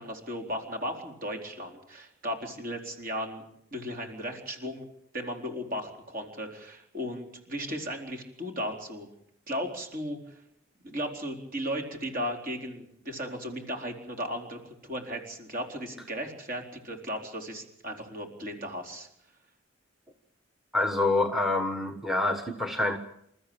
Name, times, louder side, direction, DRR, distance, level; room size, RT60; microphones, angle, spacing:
voice 1, 0.0-3.4 3.7-4.9 5.1-9.1 9.5-10.3 10.8-19.1, equal, 45° right, 3 dB, 4.3 m, -36 dB
voice 2, 20.7-23.0, left 2 dB, ahead, 7 dB, 1.3 m, -26 dB
28.5 x 14.0 x 8.9 m, 0.76 s
head